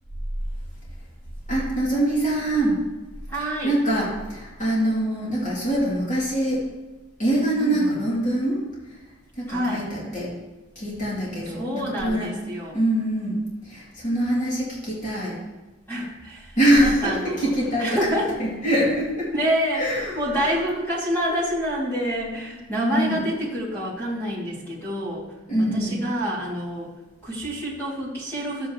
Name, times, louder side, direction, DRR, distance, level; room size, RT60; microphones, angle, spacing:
voice 1, 1.5-2.8 3.6-6.6 7.2-8.6 9.4-10.3 10.8-11.6 12.0-12.3 12.7-13.4 13.6-15.4 16.6-17.9 18.4-19.3 19.7-20.6 22.9-23.2 25.5-26.0, right 1 dB, 35° left, -6 dB, 2.8 m, -24 dB
voice 2, 3.3-3.7 7.6-8.0 9.5-9.9 11.5-12.8 15.9-17.5 17.8-18.4 19.3-19.9 20.1-25.3 25.6-26.9 27.2-28.7, equal, 10° left, -9 dB, 2.7 m, -27 dB
12.5 x 8.2 x 3.1 m, 1.1 s
head